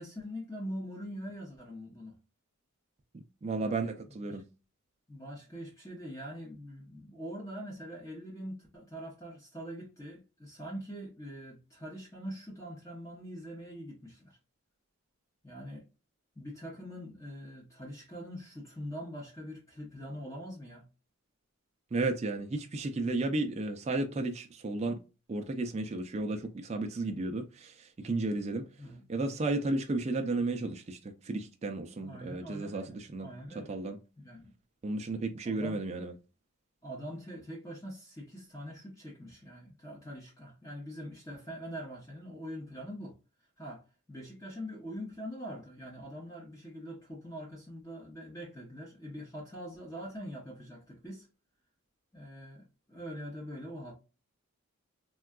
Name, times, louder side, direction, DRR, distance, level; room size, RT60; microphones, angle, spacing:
voice 1, 0.0-2.2 3.6-4.4 5.1-14.4 15.4-15.8 16.4-20.8 28.8-29.0 32.0-33.8 34.2-34.5 35.4-35.8 36.8-43.2 43.6-43.8 44.1-51.3 52.1-53.9, equal, 15° left, 0.7 m, -43 dB
voice 2, 3.1-4.4 21.9-25.0 25.3-28.7 29.1-34.0 34.8-36.1, right 2 dB, 30° right, 0.3 m, -33 dB
3.6 x 2.2 x 2.2 m
head